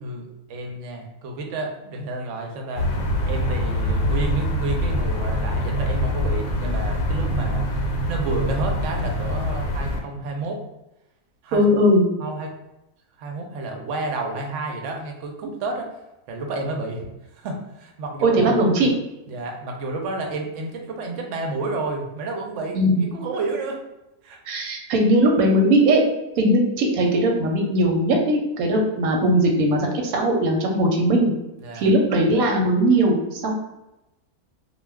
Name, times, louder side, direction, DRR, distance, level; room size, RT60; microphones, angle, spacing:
voice 1, 0.0-2.9 3.3-7.7 8.1-10.6 11.4-11.7 12.2-12.5 13.2-15.9 16.3-17.1 17.3-18.6 19.3-23.8 24.2-24.4 31.6-31.9, right 2 dB, 65° right, 2 dB, 0.8 m, -30 dB
sound 1, 2.8-10.0, equal, 75° left, 1.0 m, -24 dB
voice 2, 11.5-12.1 18.2-18.9 22.7-23.1 24.5-26.0 26.4-31.3 31.7-33.5, right 1 dB, 90° right, 2 dB, 1.1 m, -19 dB
2.3 x 2.3 x 3.3 m, 0.92 s
omnidirectional pair, 1.5 m